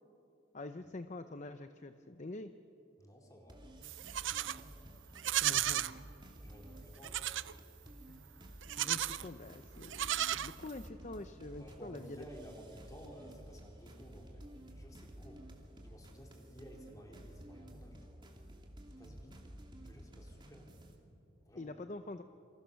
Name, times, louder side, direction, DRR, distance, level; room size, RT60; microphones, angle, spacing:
voice 1, 0.5-2.5 5.4-6.0 8.1-8.2 8.8-12.2 21.5-22.2, left 2 dB, 35° left, 9 dB, 0.7 m, -46 dB
voice 2, 3.0-3.6 4.2-4.7 6.4-7.3 11.6-15.4 15.8-18.2 19.0-19.5 19.8-20.7 21.5-21.7, equal, 20° left, 0 dB, 4.1 m, -55 dB
sound 1, 3.5-21.0, equal, 25° right, 2.8 m, -53 dB
Livestock farm animals working animals, 3.8-4.6 5.1-5.9 7.0-7.5 8.6-9.3 9.8-10.9, right 12 dB, 75° right, 0.6 m, -34 dB
27.5 x 25.5 x 7.1 m, 2.8 s
head